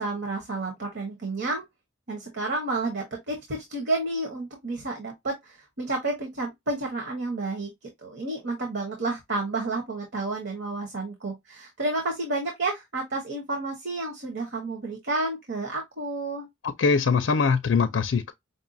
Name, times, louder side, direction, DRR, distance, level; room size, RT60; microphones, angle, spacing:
voice 1, 0.0-1.6 2.1-16.5, right 2 dB, 60° right, 1.1 m, -31 dB
voice 2, 16.6-18.3, left 5 dB, 65° left, 0.4 m, -22 dB
5.2 x 2.3 x 2.6 m
head